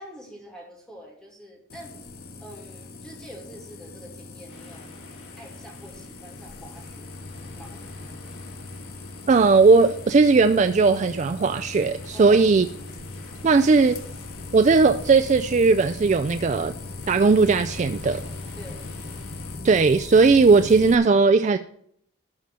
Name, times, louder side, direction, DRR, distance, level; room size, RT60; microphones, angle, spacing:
voice 1, 0.0-2.0 2.4-5.0 5.4-7.1 7.5-7.8 12.1-12.4 18.6-18.9, right 1 dB, 5° left, -2 dB, 2.6 m, -45 dB
sound 1, 1.7-21.0, left 3 dB, 45° left, 0.9 m, -39 dB
sound 2, 4.5-19.6, left 1 dB, 85° left, 5.4 m, -50 dB
voice 2, 9.3-12.7 13.4-14.0 14.5-16.7 17.1-18.2 19.6-21.6, right 4 dB, 35° right, 8 dB, 0.3 m, -18 dB
12.5 x 4.3 x 7.6 m, 0.66 s
head